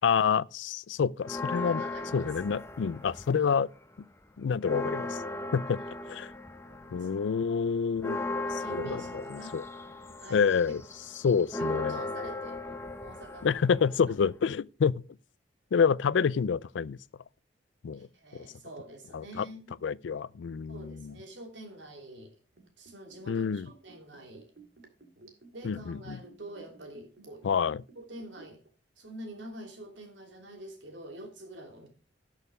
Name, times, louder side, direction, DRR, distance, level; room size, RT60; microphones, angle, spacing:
voice 1, 0.0-1.8 2.1-3.7 4.4-5.2 5.5-5.8 6.1-6.3 6.9-8.2 8.7-9.0 9.3-9.6 10.3-10.8 11.2-12.0 13.4-15.0 15.7-17.0 17.8-18.1 18.3-18.5 19.1-19.5 19.8-21.2 23.3-23.7 25.6-26.2 27.4-27.8, left 6 dB, 85° left, 0.4 m, -28 dB
sound 1, 1.2-3.6 4.0-14.5, left 2 dB, 15° left, 0.8 m, -37 dB
voice 2, 1.6-2.3 5.8-5.9 6.6-7.1 8.3-9.6 10.2-10.8 11.6-12.7 13.0-13.6 17.9-19.8 20.7-22.4 22.8-24.5 25.2-25.3 25.5-27.5 27.9-28.6 29.0-31.9, right 1 dB, 80° right, 3.0 m, -46 dB
Liquid, 22.5-28.7 29.0-29.1, right 4 dB, 65° right, 2.3 m, -55 dB
12.0 x 6.5 x 4.9 m
head